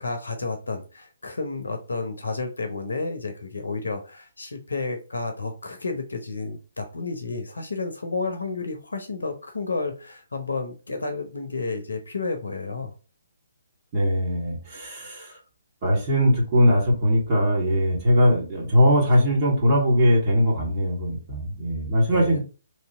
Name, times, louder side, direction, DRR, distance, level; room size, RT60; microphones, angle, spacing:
voice 1, 0.0-12.9 22.1-22.4, left 3 dB, 70° left, 6 dB, 0.8 m, -31 dB
voice 2, 13.9-15.4 15.8-22.4, equal, 30° right, -4 dB, 1.7 m, -21 dB
3.2 x 2.8 x 4.2 m, 0.34 s
figure-of-eight pair, 135°, 0 cm